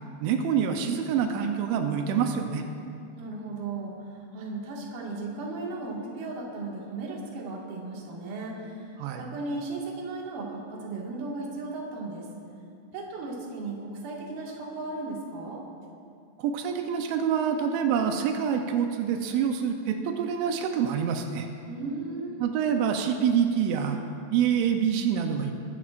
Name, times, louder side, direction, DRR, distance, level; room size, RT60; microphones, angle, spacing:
voice 1, 0.2-2.6 9.0-9.2 16.4-21.5 22.4-24.0 24.3-25.5, right 7 dB, 90° right, 4 dB, 3.2 m, -26 dB
voice 2, 3.2-12.3 12.9-15.6 21.7-22.4, right 3 dB, 60° right, -3 dB, 3.4 m, -36 dB
21.5 x 13.0 x 2.5 m, 2.5 s
omnidirectional pair, 5.2 m